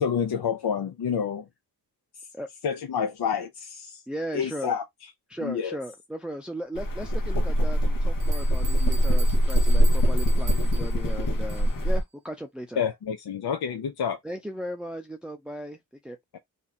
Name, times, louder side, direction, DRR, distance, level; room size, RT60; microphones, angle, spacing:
voice 1, 0.0-1.5 2.6-4.0 4.3-4.8 5.4-5.7 12.8-14.2 16.3-16.4, left 7 dB, 75° left, 0.6 m, -28 dB
voice 2, 4.1-4.7 5.3-12.8 14.2-16.2, right 1 dB, ahead, 0.6 m, -37 dB
sound 1, 6.8-12.0, equal, 55° left, 1.0 m, -22 dB
sound 2, 8.2-11.9, right 4 dB, 55° right, 0.7 m, -43 dB
2.8 x 2.4 x 4.1 m
wide cardioid pair, 65°, 39 cm